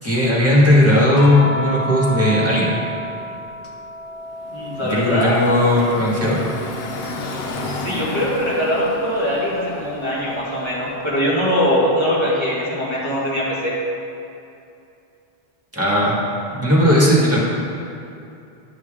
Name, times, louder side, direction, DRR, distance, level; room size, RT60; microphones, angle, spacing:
voice 1, 0.0-2.8 4.8-6.4 15.7-16.2 16.5-17.4, left 1 dB, 15° right, -6 dB, 1.9 m, -16 dB
sound 1, 1.2-5.6 6.0-7.6 9.2-9.3, equal, 85° left, 1.2 m, -31 dB
Car passing by / Traffic noise roadway noise, 4.3-11.3, left 2 dB, 70° left, 0.9 m, -32 dB
voice 2, 4.5-5.4 7.6-13.7, equal, 25° left, -9 dB, 2.4 m, -22 dB
11.5 x 6.3 x 3.8 m, 2.7 s
omnidirectional pair, 1.1 m